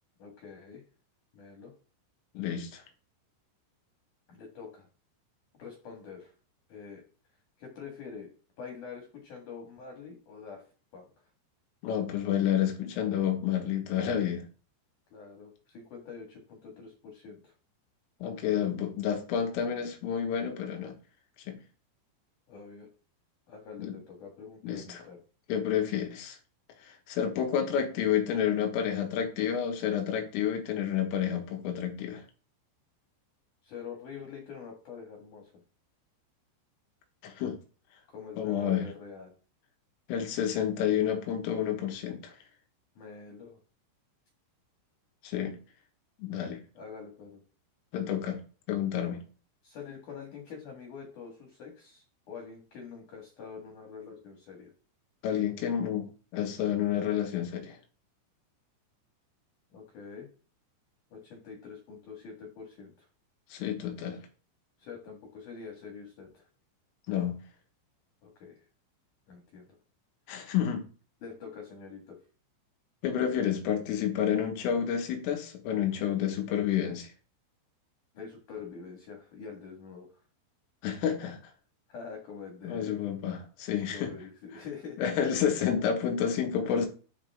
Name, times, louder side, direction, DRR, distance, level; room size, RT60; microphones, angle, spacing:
voice 1, 0.2-0.8 1.3-1.7 4.3-4.9 5.6-6.3 6.7-7.0 7.6-8.3 8.6-10.6 10.9-11.1 15.1-17.5 22.5-22.9 23.5-25.2 33.6-35.5 38.1-39.3 43.0-43.6 46.7-47.4 49.6-54.7 59.7-60.3 61.1-63.1 64.8-66.4 68.2-68.6 69.3-69.7 71.2-72.2 78.1-80.1 81.9-83.1 83.9-85.2, left 5 dB, 50° left, 2.7 m, -45 dB
voice 2, 2.4-2.8 11.8-14.5 18.2-21.0 21.5-21.6 23.8-24.0 24.6-25.0 25.5-26.4 27.1-32.2 37.2-37.6 38.4-38.9 40.1-42.3 45.2-45.6 46.2-46.6 47.9-48.4 48.7-49.2 55.2-56.1 56.3-57.8 63.5-64.2 67.1-67.4 70.3-70.9 73.0-77.1 80.8-81.4 82.6-84.1 85.0-86.9, left 9 dB, 90° left, 4.1 m, -29 dB
12.5 x 5.3 x 3.6 m
omnidirectional pair, 5.7 m